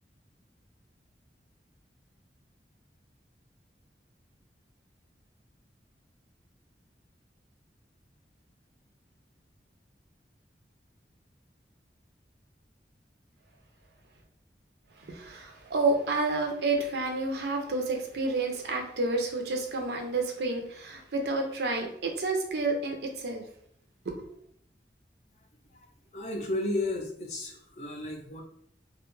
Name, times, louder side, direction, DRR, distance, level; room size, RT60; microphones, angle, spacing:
voice 1, 15.0-23.4 24.0-24.3, right 3 dB, 70° right, 3 dB, 0.5 m, -30 dB
voice 2, 26.1-28.4, left 2 dB, 40° left, 2 dB, 0.4 m, -33 dB
2.2 x 2.0 x 3.0 m, 0.66 s
head